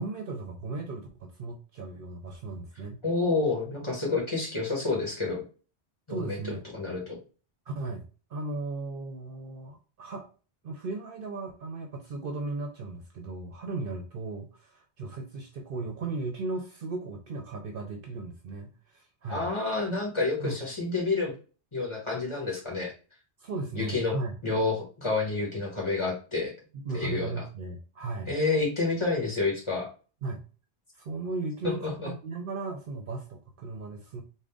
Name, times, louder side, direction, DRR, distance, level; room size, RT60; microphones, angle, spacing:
voice 1, 0.0-3.0 6.1-6.6 7.7-10.3 10.6-19.5 20.4-20.6 23.4-24.4 26.8-28.3 30.2-30.4 30.9-34.2, right 3 dB, 60° right, 3 dB, 0.7 m, -36 dB
voice 2, 3.0-5.4 6.1-7.2 19.3-21.3 21.7-22.9 23.7-24.1 24.4-26.5 26.9-27.4 28.3-29.9 31.6-32.1, left 3 dB, 25° left, -2 dB, 1.3 m, -29 dB
3.7 x 2.2 x 3.4 m, 0.36 s
omnidirectional pair, 1.1 m